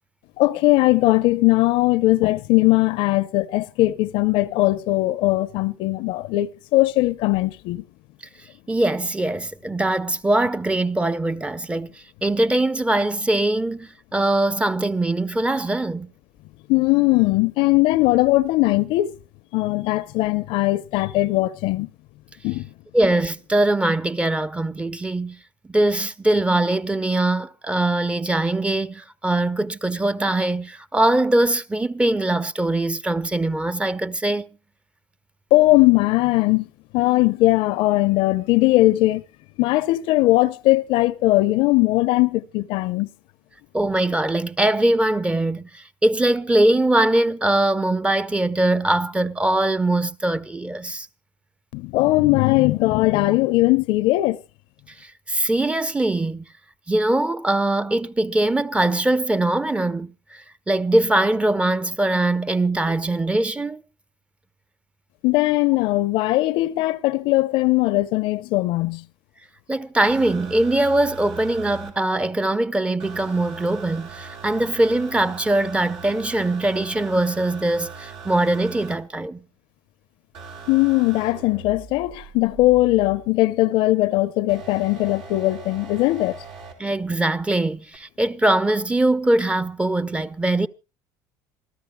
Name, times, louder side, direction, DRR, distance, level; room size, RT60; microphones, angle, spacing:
voice 1, 0.4-7.8 16.7-19.1 19.5-21.9 22.4-22.7 35.5-36.7 36.9-39.2 39.6-43.1 51.7-54.4 65.2-69.0 80.7-86.4, left 18 dB, 70° left, 0.7 m, -19 dB
voice 2, 8.7-11.9 12.2-16.1 22.9-25.4 25.7-34.4 43.7-51.1 55.0-56.4 56.9-63.8 69.7-79.4 86.8-90.7, right 1 dB, 10° right, 0.7 m, -22 dB
sound 1, 70.1-71.9 73.0-79.0 80.3-83.3 84.5-86.7 87.9-88.0, right 5 dB, 80° right, 3.6 m, -40 dB
27.0 x 13.5 x 2.2 m
supercardioid pair, 100°, 9 cm